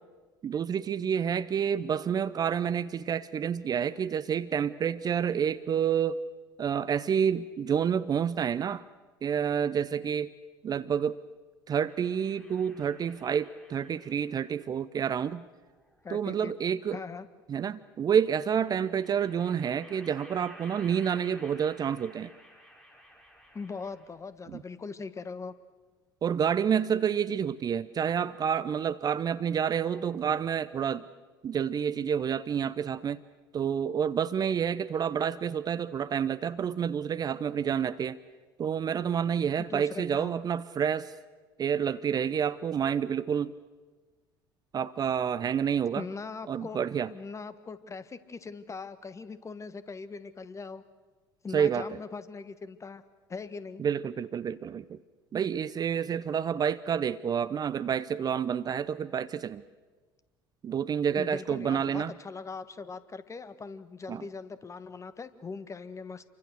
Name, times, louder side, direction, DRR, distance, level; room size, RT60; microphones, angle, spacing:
voice 1, 0.4-6.2 6.6-8.8 9.2-10.3 10.6-11.2 11.7-15.4 16.1-17.0 17.5-22.3 24.5-24.6 26.2-31.0 31.4-33.2 33.5-38.2 38.6-41.1 41.6-43.6 44.7-46.0 46.5-47.1 51.5-51.9 53.8-55.0 55.3-59.6 60.6-62.1 64.1-64.2, right 8 dB, 35° right, 16 dB, 0.7 m, -29 dB
sound 1, 11.9-14.5 15.7-16.7 18.3-24.3, equal, 5° left, 5.3 m, -54 dB
voice 2, 16.0-16.5 16.9-17.3 23.5-25.5 39.6-40.3 45.9-46.8 47.1-50.8 51.4-53.0 53.3-53.8 61.2-66.2, left 4 dB, 25° left, 12 dB, 1.6 m, -40 dB
28.5 x 24.0 x 6.6 m, 1.4 s
figure-of-eight pair, 60°, 12 cm